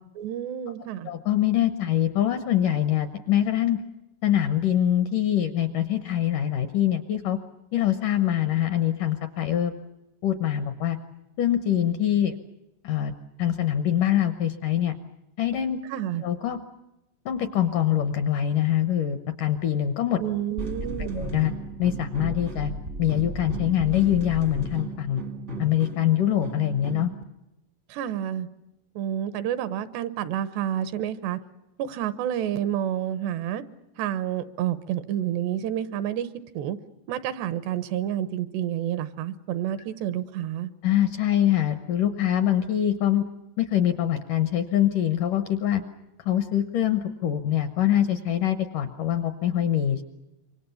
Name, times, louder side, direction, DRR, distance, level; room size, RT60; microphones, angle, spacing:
voice 1, 0.2-1.1 15.9-16.2 20.2-21.3 27.9-28.5 29.0-31.4 31.8-33.6 34.0-36.3 36.5-36.8 37.1-40.7, right 11 dB, 80° right, 13 dB, 3.2 m, -29 dB
voice 2, 1.0-3.8 4.2-7.4 7.7-9.8 10.2-11.0 11.4-12.4 12.8-13.1 13.4-15.0 15.4-15.8 16.2-16.6 17.3-20.2 21.0-21.5 21.8-22.7 23.0-25.2 25.6-27.1 40.8-43.3 43.6-45.8 46.3-50.0, left 11 dB, 70° left, 9 dB, 2.0 m, -24 dB
sound 1, 20.6-27.2, right 2 dB, 45° right, 0.9 m, -35 dB
26.5 x 24.0 x 7.1 m, 0.95 s
omnidirectional pair, 4.9 m